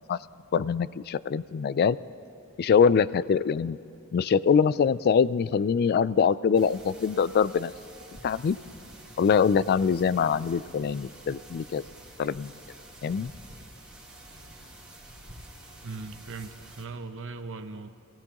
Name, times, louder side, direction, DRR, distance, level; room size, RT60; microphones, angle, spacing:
voice 1, 0.5-2.0 2.6-3.8 4.1-7.7 8.2-8.6 9.2-11.8 12.2-12.5 13.0-13.3, left 6 dB, 45° left, 18 dB, 0.3 m, -23 dB
sound 1, 6.5-16.8, right 1 dB, 5° right, 3.2 m, -48 dB
voice 2, 15.8-17.9, right 3 dB, 65° right, 8 dB, 0.8 m, -39 dB
27.5 x 16.5 x 3.0 m, 2.6 s
head